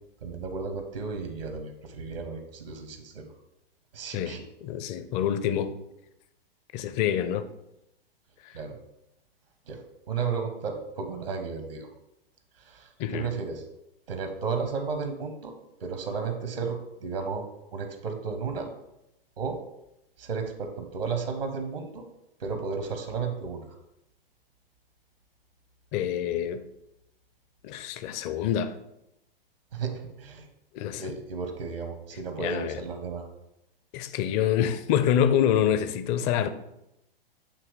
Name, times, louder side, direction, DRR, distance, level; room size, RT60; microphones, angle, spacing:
voice 1, 0.2-3.3 3.9-4.4 8.5-8.8 9.7-9.8 10.1-11.9 12.6-13.6 14.1-15.5 15.8-18.7 19.4-19.6 20.2-22.0 22.4-23.6 29.7-30.5 31.0-33.2, right 5 dB, 70° right, 1.1 m, -33 dB
voice 2, 4.1-5.7 6.7-7.5 8.4-8.6 13.0-13.3 25.9-26.6 27.6-28.8 30.7-31.1 32.4-32.8 33.9-36.5, left 9 dB, 25° left, 0.4 m, -26 dB
8.5 x 3.0 x 4.7 m
figure-of-eight pair, 105°, 30 cm